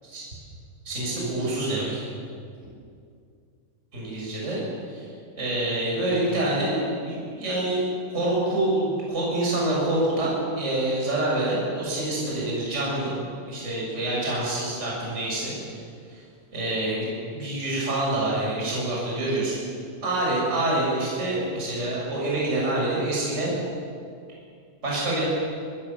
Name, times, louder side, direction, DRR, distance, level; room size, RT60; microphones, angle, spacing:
voice 1, 0.8-2.0 3.9-4.6 4.9-5.1 5.4-7.9 8.1-13.1 13.5-15.5 16.1-16.2 16.5-17.0 17.3-19.6 20.0-23.5 24.8-25.2, right 1 dB, 15° right, -5 dB, 7.3 m, -26 dB
26.0 x 20.0 x 7.5 m, 2.3 s
omnidirectional pair, 5.6 m